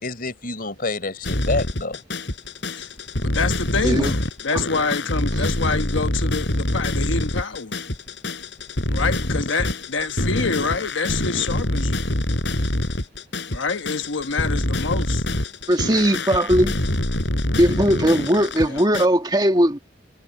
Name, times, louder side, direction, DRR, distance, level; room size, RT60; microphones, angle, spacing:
voice 1, 0.0-2.0, left 3 dB, 50° left, 4.3 m, -28 dB
sound 1, 1.2-19.1, left 1 dB, 70° left, 4.3 m, -25 dB
voice 2, 3.2-7.8 8.9-12.0 13.5-15.2, left 4 dB, 90° left, 1.1 m, -26 dB
voice 3, 15.7-16.8 17.6-19.8, equal, 20° right, 2.0 m, -19 dB
head